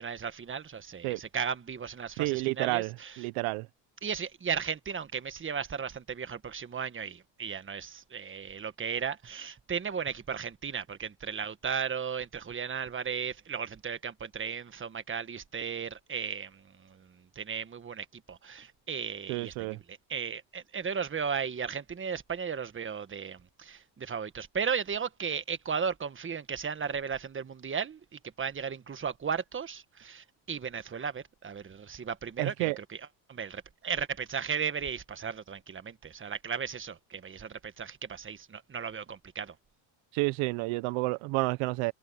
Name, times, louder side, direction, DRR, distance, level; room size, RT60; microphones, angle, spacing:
voice 1, 0.0-3.2 4.0-17.1 17.3-28.0 28.4-32.8 33.3-39.5, right 6 dB, 25° right, 1.4 m, -35 dB
voice 2, 2.2-3.7 19.3-19.8 32.4-32.8 40.1-41.9, right 23 dB, 80° right, 0.9 m, -30 dB
cardioid pair, 105°, 48 cm